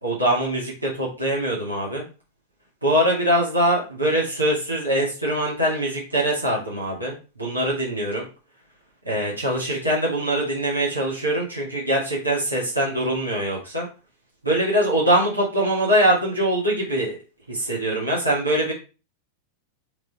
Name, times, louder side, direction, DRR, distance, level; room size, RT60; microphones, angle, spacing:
voice 1, 0.0-2.0 2.8-8.2 9.1-13.9 14.4-17.2 17.5-18.7, right 1 dB, 85° right, -4 dB, 2.4 m, -23 dB
5.8 x 3.9 x 4.4 m, 0.32 s
figure-of-eight pair, 90°, 0 cm